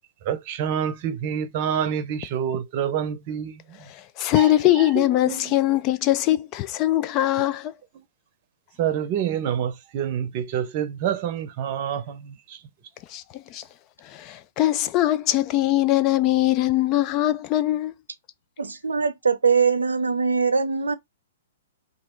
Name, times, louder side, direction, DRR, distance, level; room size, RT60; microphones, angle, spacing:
voice 1, 0.2-3.9 4.3-5.6 7.9-8.0 8.8-12.6, right 9 dB, 45° right, 0.7 m, -28 dB
voice 2, 3.9-7.7 13.1-13.6 14.0-17.9, left 14 dB, 35° left, 0.3 m, -22 dB
voice 3, 18.6-21.0, right 5 dB, 80° right, 0.5 m, -22 dB
3.0 x 2.7 x 3.0 m
figure-of-eight pair, 120°, 0 cm